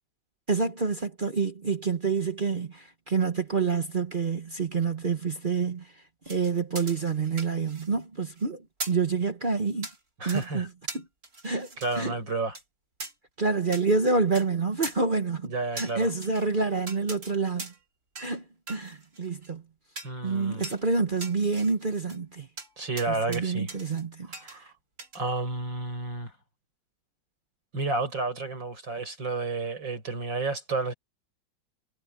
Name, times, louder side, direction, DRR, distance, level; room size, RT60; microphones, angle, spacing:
voice 1, 0.5-5.9 6.3-9.9 10.2-10.7 10.9-11.0 11.4-11.7 12.0-12.2 13.4-17.7 18.2-19.6 20.2-22.5 23.1-24.6, right 4 dB, 35° right, 1.0 m, -28 dB
sound 1, 6.3-8.0 8.3-8.4 8.8-9.1 9.8-10.0 10.3-10.5 10.9-12.1 12.6-12.7 13.0-13.1 13.7-13.8 14.4-14.5 14.8-15.0 15.8-16.5 16.9-17.3 17.6-17.9 18.2-18.4 18.7-19.5 20.0-20.2 20.6-20.8 21.2-22.2 22.6-22.7 23.0-23.4 23.7-24.0 24.3-24.6 25.0-25.2, right 2 dB, 50° right, 4.8 m, -40 dB
voice 2, 10.2-10.7 11.8-12.6 15.4-16.1 20.0-20.7 22.8-23.7 24.3-24.7 25.1-26.3 27.7-30.9, right 3 dB, 90° right, 7.9 m, -31 dB
omnidirectional pair, 2.0 m